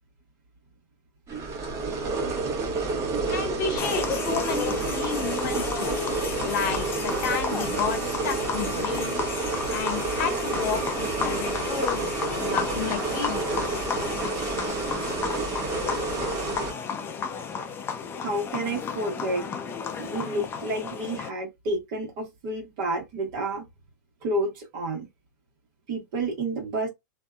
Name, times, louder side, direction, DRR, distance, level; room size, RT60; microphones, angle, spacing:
sound 1, 1.3-16.7, right 4 dB, 30° right, 1.1 m, -29 dB
voice 1, 3.3-5.9 6.4-9.2 9.7-13.7, left 7 dB, 60° left, 1.2 m, -32 dB
sound 2, 3.8-21.3, left 6 dB, 20° left, 0.4 m, -33 dB
sound 3, 7.0-16.6, right 6 dB, 90° right, 0.8 m, -43 dB
voice 2, 18.2-19.4 20.0-23.7 24.2-25.1 25.9-26.9, right 1 dB, 50° right, 1.2 m, -30 dB
2.6 x 2.3 x 2.2 m
hypercardioid pair, 120°, 11 cm